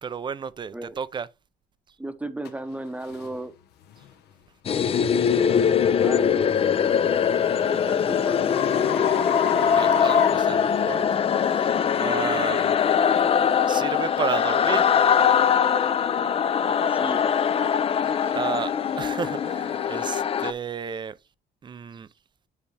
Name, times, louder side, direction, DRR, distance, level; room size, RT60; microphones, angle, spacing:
voice 1, 0.0-1.3 9.6-12.8 13.6-14.8 18.3-21.2 21.6-22.1, right 6 dB, 25° right, 0.5 m, -32 dB
voice 2, 2.0-3.5 6.0-6.6 7.6-8.6 16.5-17.3 18.2-18.3, right 1 dB, 10° right, 0.8 m, -35 dB
sound 1, 2.5-2.6 3.1-3.3 3.9-4.1 6.8-11.3, left 9 dB, 75° left, 1.0 m, -30 dB
sound 2, 4.7-20.5, left 7 dB, 35° left, 0.5 m, -22 dB
9.7 x 3.4 x 3.3 m
cardioid pair, 110°, 17 cm